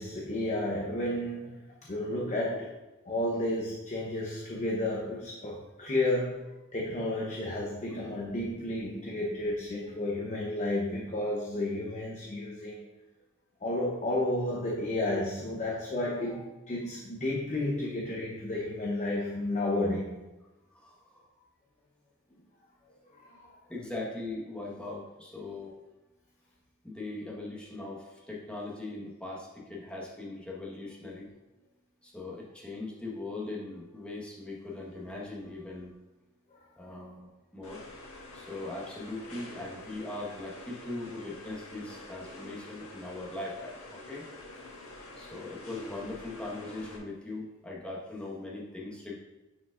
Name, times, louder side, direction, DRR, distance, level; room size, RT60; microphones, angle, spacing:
voice 1, 0.0-1.6 1.9-2.7 3.1-6.4 6.7-12.9 13.6-20.2 23.2-23.5, left 1 dB, 35° left, -3 dB, 0.8 m, -32 dB
voice 2, 20.7-21.2 23.7-25.8 26.8-31.3 32.0-36.0 36.8-37.8 38.3-44.2 45.2-49.2, left 2 dB, 5° left, -5 dB, 1.3 m, -40 dB
sound 1, 37.6-47.0, left 2 dB, 80° left, 1.5 m, -47 dB
9.6 x 5.1 x 2.5 m, 1.1 s
head